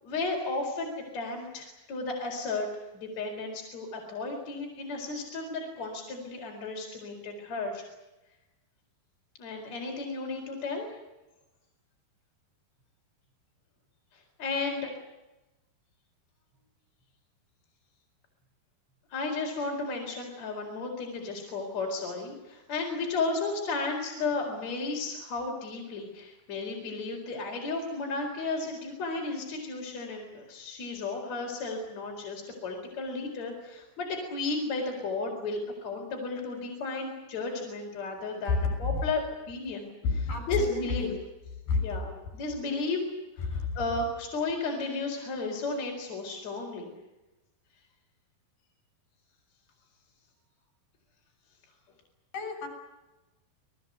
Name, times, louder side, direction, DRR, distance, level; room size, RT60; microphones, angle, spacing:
voice 1, 0.0-2.7 2.9-7.8 9.4-10.9 14.1-15.0 19.1-39.9 40.5-41.1 41.8-43.0 43.4-46.9, left 3 dB, 45° left, 0 dB, 5.4 m, -33 dB
voice 2, 38.5-39.1 40.0-41.2 41.7-42.0 42.6-42.7 43.4-43.8 52.3-52.7, left 4 dB, 65° left, 6 dB, 8.5 m, -30 dB
28.5 x 20.0 x 8.2 m, 1.0 s
omnidirectional pair, 4.6 m